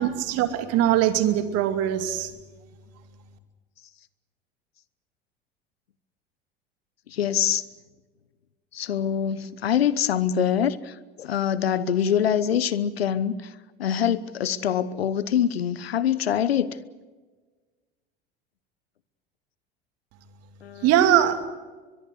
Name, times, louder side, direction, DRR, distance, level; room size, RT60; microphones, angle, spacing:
voice 1, 0.0-2.3 20.8-21.4, right 11 dB, 55° right, 2.8 m, -21 dB
voice 2, 7.1-7.6 8.7-13.5 13.8-16.8 20.6-20.9, left 9 dB, 85° left, 1.0 m, -24 dB
23.0 x 22.5 x 8.0 m
hypercardioid pair, 75°, 30 cm